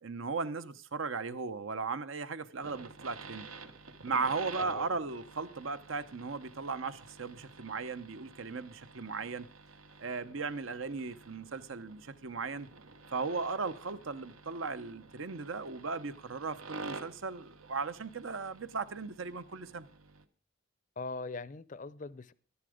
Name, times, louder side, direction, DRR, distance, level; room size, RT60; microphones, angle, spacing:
voice 1, 0.0-3.5 4.0-9.5 10.0-12.7 13.1-19.9, right 4 dB, 75° right, 0.8 m, -37 dB
sound 1, 2.6-20.2, right 4 dB, 90° right, 1.2 m, -50 dB
voice 2, 21.0-22.3, left 3 dB, 40° left, 0.5 m, -41 dB
12.5 x 11.5 x 5.0 m
head